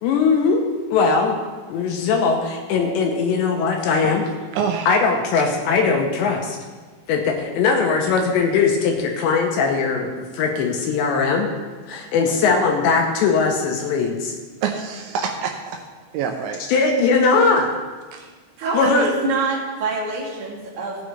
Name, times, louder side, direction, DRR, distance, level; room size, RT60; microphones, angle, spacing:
voice 1, 0.0-1.4 1.7-4.2 4.9-6.6 7.1-11.5 11.9-14.4 16.7-17.7 18.7-19.1, left 4 dB, 75° left, 2 dB, 2.9 m, -20 dB
voice 2, 4.5-4.9 11.9-12.1 14.6-15.8 16.1-16.6 18.1-18.3 18.8-19.1, right 6 dB, 80° right, 3 dB, 2.9 m, -27 dB
voice 3, 18.6-21.0, right 3 dB, 60° right, -7 dB, 4.6 m, -25 dB
16.0 x 9.1 x 3.3 m, 1.4 s
omnidirectional pair, 5.6 m